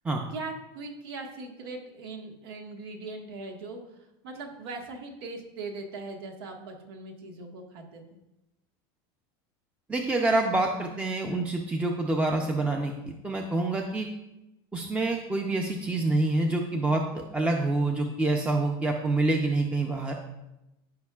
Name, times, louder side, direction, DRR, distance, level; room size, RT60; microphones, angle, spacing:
voice 1, 0.3-8.0, right 3 dB, 85° right, 3 dB, 1.5 m, -40 dB
voice 2, 9.9-12.9 13.2-14.1 14.7-20.1, right 2 dB, 10° right, 2 dB, 0.5 m, -27 dB
14.0 x 5.3 x 2.4 m, 0.93 s
supercardioid pair, 145°, 12 cm